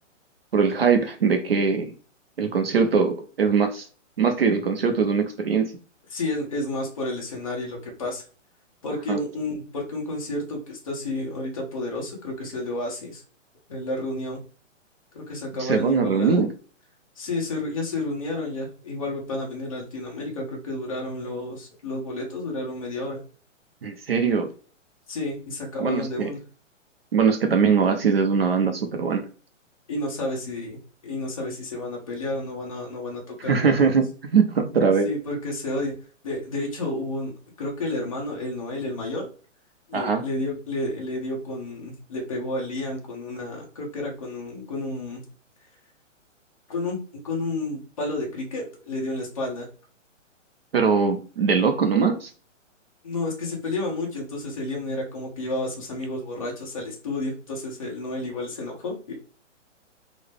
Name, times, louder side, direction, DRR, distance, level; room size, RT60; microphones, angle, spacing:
voice 1, 0.5-1.9 2.4-3.9 4.2-5.7 9.1-9.2 15.6-16.5 23.8-24.5 25.8-26.3 27.1-29.2 33.5-35.1 39.9-40.2 50.7-52.3, right 5 dB, 50° right, 6 dB, 0.6 m, -21 dB
voice 2, 6.1-8.2 8.8-13.2 13.7-14.4 15.1-16.4 17.2-23.2 25.1-26.4 29.9-30.8 31.0-33.9 35.0-35.9 36.2-37.3 37.6-39.3 39.9-45.2 46.7-47.0 47.2-49.7 53.0-59.1, left 2 dB, 25° left, -2 dB, 0.9 m, -31 dB
3.8 x 2.1 x 3.4 m, 0.39 s
hypercardioid pair, 180°, 38 cm